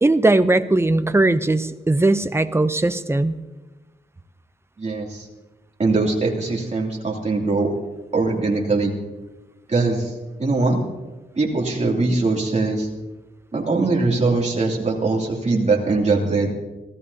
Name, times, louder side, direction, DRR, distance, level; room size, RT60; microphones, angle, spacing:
voice 1, 0.0-3.4, right 2 dB, 15° right, 11 dB, 0.5 m, -19 dB
voice 2, 4.8-5.3 5.8-7.8 8.1-9.0 9.7-10.1 10.4-10.8 11.4-12.9 13.5-16.5, right 3 dB, 40° right, -2 dB, 2.7 m, -21 dB
25.0 x 16.0 x 2.8 m, 1.1 s
wide cardioid pair, 170°, 18 cm